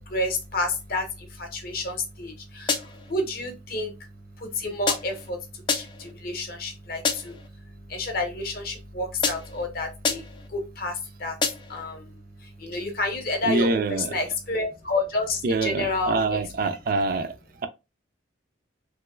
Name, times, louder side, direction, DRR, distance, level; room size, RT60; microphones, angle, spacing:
voice 1, 0.0-11.4 11.7-16.4, left 2 dB, 50° left, 0.8 m, -30 dB
sound 1, 2.7-3.1 4.9-5.3 5.7-6.1 7.0-7.5 9.2-9.7 10.0-10.5 11.4-11.8, left 5 dB, 25° left, 0.4 m, -28 dB
voice 2, 13.5-14.2 15.4-17.3, right 3 dB, 45° right, 0.3 m, -25 dB
3.1 x 3.0 x 2.2 m
head